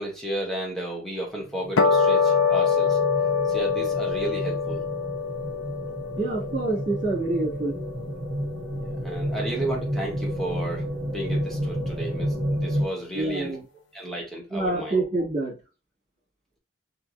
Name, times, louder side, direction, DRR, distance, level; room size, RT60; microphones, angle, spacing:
voice 1, 0.0-3.0 3.5-4.8 9.0-13.6 13.9-15.0, right 1 dB, ahead, -2 dB, 1.2 m, -33 dB
sound 1, 1.5-12.8, equal, 25° right, 1.1 m, -31 dB
sound 2, 1.8-8.3, left 5 dB, 90° left, 0.6 m, -25 dB
voice 2, 6.2-7.8 13.1-13.6 14.5-15.5, right 2 dB, 45° right, -2 dB, 2.2 m, -26 dB
4.5 x 3.1 x 2.7 m, 0.30 s
head